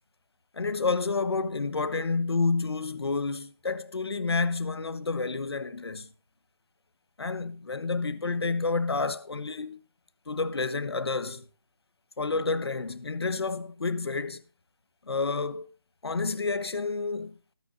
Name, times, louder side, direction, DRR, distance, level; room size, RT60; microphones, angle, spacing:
voice 1, 0.5-6.1 7.2-9.8 10.3-11.5 12.2-14.4 15.1-15.7 16.0-17.4, left 4 dB, 75° left, 1.2 m, -29 dB
19.5 x 9.5 x 2.6 m
hypercardioid pair, 175°, 13 cm